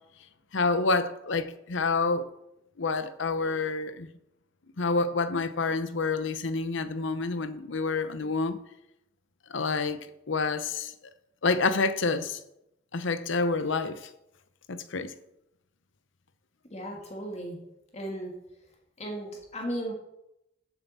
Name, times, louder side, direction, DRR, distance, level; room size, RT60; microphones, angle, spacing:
voice 1, 0.5-2.2 2.8-4.1 4.8-8.6 9.5-10.0 10.3-10.9 11.4-12.4 12.9-14.1 14.7-15.1, left 3 dB, 70° left, 0.8 m, -28 dB
voice 2, 16.7-17.6 17.9-18.7 19.0-19.9, right 1 dB, 35° left, 1.8 m, -36 dB
8.2 x 7.1 x 7.2 m
head